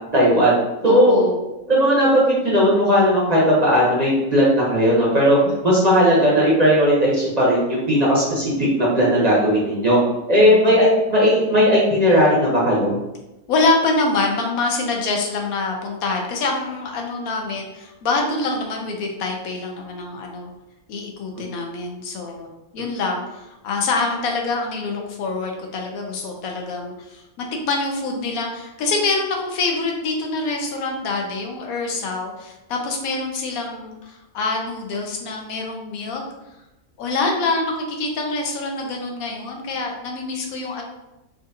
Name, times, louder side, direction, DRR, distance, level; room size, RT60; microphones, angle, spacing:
voice 1, 0.1-0.5 0.8-1.2 1.7-5.4 5.6-10.0 10.3-12.9, equal, 40° right, -6 dB, 0.7 m, -16 dB
voice 2, 0.8-1.4 5.5-5.8 10.5-10.8 13.5-20.5 20.9-36.2 37.0-40.8, left 3 dB, 80° left, 1 dB, 1.1 m, -25 dB
3.7 x 2.5 x 2.6 m, 0.97 s
omnidirectional pair, 1.5 m